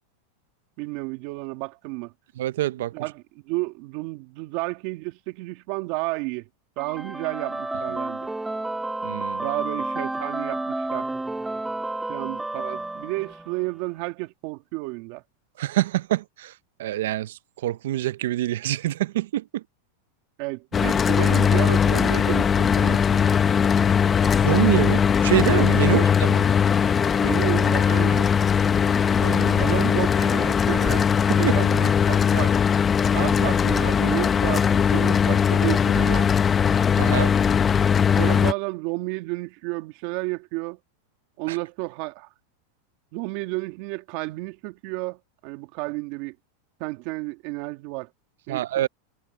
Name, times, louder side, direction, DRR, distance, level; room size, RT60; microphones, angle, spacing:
voice 1, 0.8-2.1 2.9-6.5 6.8-8.3 9.4-11.1 12.1-15.2 20.4-23.2 25.8-26.1 27.2-28.3 29.6-31.1 31.4-32.5 33.1-36.3 38.2-40.8 41.4-42.3 43.1-46.4 46.8-48.1 48.5-48.8, right 24 dB, 55° right, 2.1 m, -31 dB
voice 2, 2.4-2.9 9.0-9.4 15.6-16.5 16.8-19.6 24.2-26.4 29.2-29.7 36.9-37.3 41.5-41.6 48.5-48.9, right 14 dB, 80° right, 0.5 m, -26 dB
sound 1, 6.8-13.7, right 2 dB, 5° right, 2.1 m, -31 dB
Mechanical fan, 20.7-38.5, left 7 dB, 20° left, 0.8 m, -20 dB
supercardioid pair, 135°, 0 cm